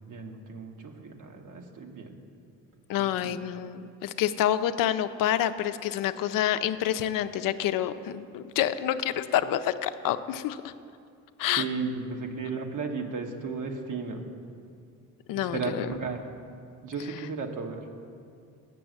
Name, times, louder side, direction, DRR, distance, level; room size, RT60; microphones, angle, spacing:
voice 1, 0.1-2.2 3.0-3.3 11.6-14.2 15.3-16.2 16.8-17.8, right 4 dB, 60° right, 3 dB, 1.2 m, -34 dB
voice 2, 2.9-10.6 11.4-11.6 15.3-15.9, left 11 dB, 65° left, 11 dB, 0.5 m, -28 dB
7.0 x 6.8 x 7.6 m, 2.4 s
supercardioid pair, 70°, 35 cm